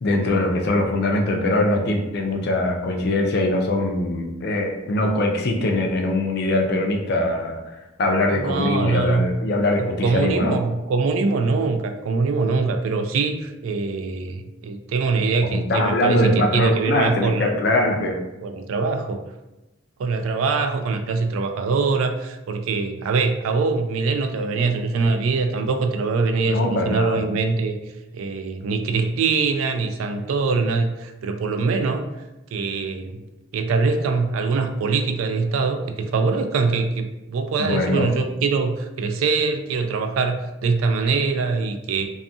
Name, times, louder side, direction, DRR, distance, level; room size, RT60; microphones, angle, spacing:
voice 1, 0.0-10.6 15.5-18.2 26.5-27.2 37.6-38.1, left 1 dB, 55° left, 3 dB, 0.4 m, -22 dB
voice 2, 8.3-9.3 9.8-17.5 18.4-19.2 20.0-27.8 28.1-32.0 32.5-33.2 33.5-42.1, right 4 dB, 85° right, 7 dB, 0.3 m, -23 dB
2.6 x 2.3 x 2.6 m, 1.0 s
head